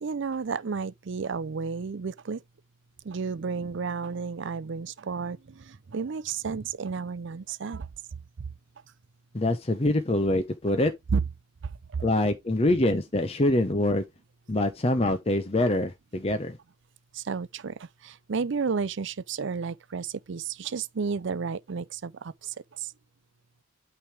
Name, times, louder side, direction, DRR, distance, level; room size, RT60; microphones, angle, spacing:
voice 1, 0.0-2.4 3.0-7.9 11.1-11.2 17.1-17.7 18.0-22.5 22.8-22.9, right 5 dB, 60° right, 0.5 m, -32 dB
voice 2, 9.3-10.9 12.0-14.0 14.5-16.6, left 1 dB, 30° left, 0.8 m, -25 dB
8.7 x 3.4 x 4.7 m
head